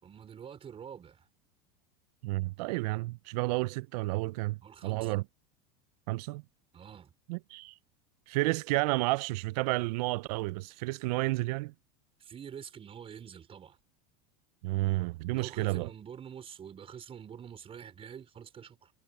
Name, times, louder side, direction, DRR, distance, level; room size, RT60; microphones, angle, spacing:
voice 1, 0.0-1.3 4.6-5.1 6.7-7.1 12.2-13.8 15.3-18.9, right 8 dB, 25° right, 4.9 m, -46 dB
voice 2, 2.2-4.6 4.8-5.2 6.1-6.4 7.3-7.8 8.3-11.7 14.6-15.9, right 21 dB, 70° right, 0.5 m, -31 dB
supercardioid pair, 120°, 21 cm